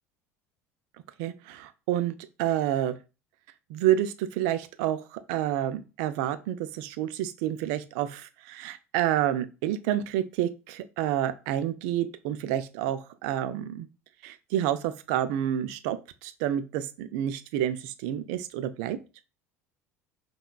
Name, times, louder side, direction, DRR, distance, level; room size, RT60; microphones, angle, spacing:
voice 1, 1.2-2.9 3.7-13.9 14.2-16.0 16.2-19.0, right 11 dB, 55° right, 11 dB, 0.4 m, -29 dB
5.6 x 2.2 x 2.3 m, 0.31 s
figure-of-eight pair, 65°, 8 cm